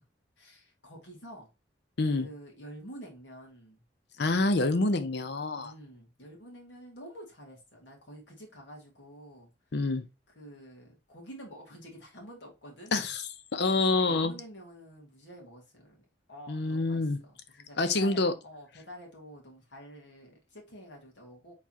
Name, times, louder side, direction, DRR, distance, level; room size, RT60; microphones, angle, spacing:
voice 1, 0.4-1.5 2.1-3.8 5.6-9.5 10.3-13.0 13.8-21.5, equal, 80° left, 2.2 m, -49 dB
voice 2, 4.2-5.7 9.7-10.0 12.9-13.2 13.5-14.3 16.5-17.2 17.8-18.3, left 3 dB, 65° left, 0.7 m, -27 dB
4.6 x 3.8 x 2.8 m
head